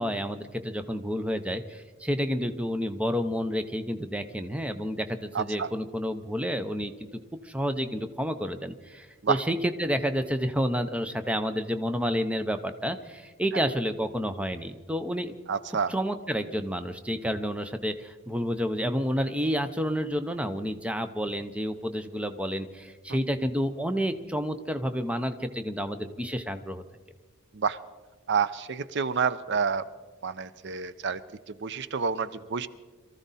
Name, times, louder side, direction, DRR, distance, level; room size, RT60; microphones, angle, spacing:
voice 1, 0.0-7.1 7.4-15.4 15.9-26.8, equal, 5° right, 9 dB, 0.6 m, -30 dB
voice 2, 5.3-5.7 9.2-9.4 15.5-15.9 27.5-27.8 28.3-29.9 30.2-31.2 31.5-32.7, right 6 dB, 55° right, 15 dB, 0.5 m, -28 dB
23.0 x 14.5 x 4.1 m, 1.3 s
head